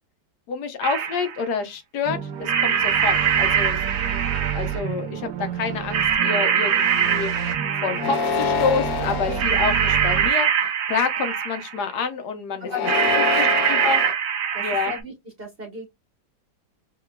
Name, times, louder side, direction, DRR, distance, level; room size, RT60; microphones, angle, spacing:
voice 1, 0.5-3.8 4.1-4.2 4.5-7.3 7.8-12.9 13.4-14.0 14.6-14.9, left 5 dB, 70° left, 1.2 m, -28 dB
sound 1, 0.8-1.4 2.4-4.9 5.9-8.4 9.4-11.8 12.8-15.0, right 8 dB, 60° right, 0.7 m, -23 dB
sound 2, 2.1-10.3, right 9 dB, 80° right, 1.4 m, -30 dB
sound 3, 7.9-9.4 10.1-10.7 12.6-14.1, left 5 dB, 90° left, 1.3 m, -26 dB
voice 2, 12.6-13.9 14.5-15.1 15.4-15.9, left 2 dB, 40° right, 1.0 m, -36 dB
4.8 x 2.9 x 2.2 m
omnidirectional pair, 1.9 m